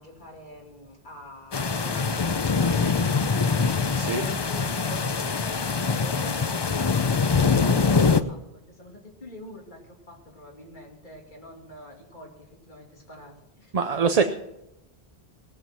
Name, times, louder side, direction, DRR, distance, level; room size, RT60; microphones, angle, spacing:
voice 1, 0.0-13.7, left 1 dB, 50° left, 0 dB, 2.7 m, -45 dB
sound 1, 1.5-8.2, left 5 dB, 35° left, 0.5 m, -23 dB
voice 2, 13.7-14.2, right 5 dB, 45° right, 7 dB, 0.7 m, -23 dB
18.5 x 7.4 x 6.0 m, 0.90 s
omnidirectional pair, 1.1 m